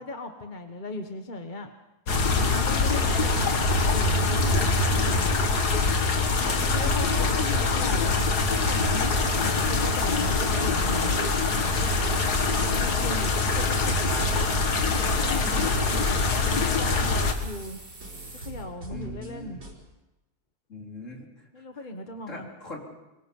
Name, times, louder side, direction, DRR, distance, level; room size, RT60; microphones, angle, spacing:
voice 1, 0.0-1.7 2.5-5.3 6.4-11.3 12.5-13.3 14.9-17.8 18.3-19.6 21.5-22.5, left 2 dB, 30° left, 5 dB, 1.3 m, -37 dB
sound 1, 2.1-17.3, left 3 dB, 75° left, 2.3 m, -24 dB
voice 2, 6.6-7.5 13.0-13.2 13.6-14.5 15.5-15.7 18.9-19.6 20.7-21.6 22.3-22.9, left 1 dB, 50° left, -1 dB, 4.4 m, -40 dB
sound 2, 9.0-18.6, right 2 dB, 65° right, 5.2 m, -47 dB
sound 3, 11.6-19.7, right 2 dB, 85° right, 4.6 m, -41 dB
26.0 x 23.0 x 5.5 m, 1.0 s
omnidirectional pair, 1.7 m